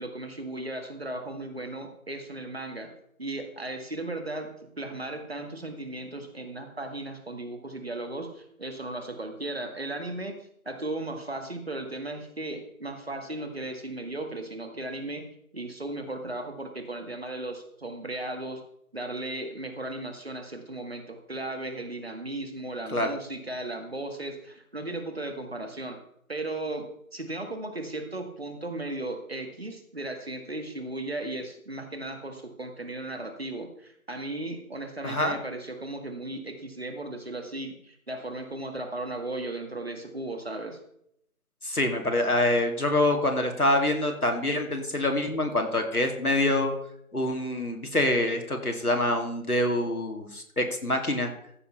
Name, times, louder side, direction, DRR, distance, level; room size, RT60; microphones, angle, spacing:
voice 1, 0.0-10.4 10.7-18.6 18.9-26.0 26.3-40.8, right 2 dB, 45° right, 5 dB, 1.8 m, -36 dB
voice 2, 35.0-35.4 41.6-46.7 47.1-51.3, left 1 dB, 85° left, 4 dB, 2.6 m, -26 dB
14.5 x 5.2 x 5.6 m, 0.73 s
figure-of-eight pair, 170°, 43 cm